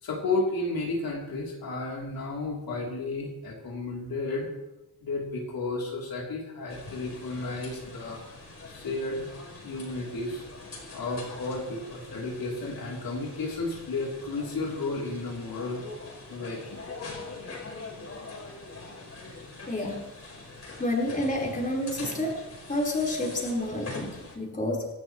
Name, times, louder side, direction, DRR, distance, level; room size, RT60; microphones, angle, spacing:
voice 1, 0.0-4.5 5.0-8.2 8.7-9.4 9.6-10.4 10.9-15.8 16.3-16.8, left 2 dB, 70° left, -2 dB, 3.3 m, -32 dB
sound 1, 6.7-24.4, left 3 dB, 45° left, 4.9 m, -43 dB
voice 2, 19.7-20.0 20.8-22.4 22.7-24.9, left 1 dB, 20° left, -2 dB, 4.4 m, -29 dB
27.0 x 12.5 x 3.1 m, 0.99 s
wide cardioid pair, 130°, 37 cm